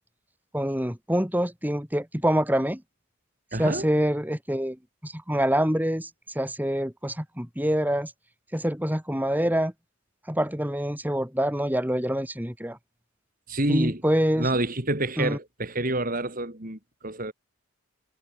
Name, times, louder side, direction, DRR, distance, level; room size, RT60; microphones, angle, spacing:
voice 1, 0.5-2.8 3.6-4.8 5.0-6.1 6.3-8.1 8.5-9.7 10.3-12.8 13.7-14.5 15.2-15.4, equal, 10° right, 5.9 m, -26 dB
voice 2, 3.5-3.9 13.5-14.0 14.4-17.3, right 1 dB, 40° right, 4.1 m, -28 dB
head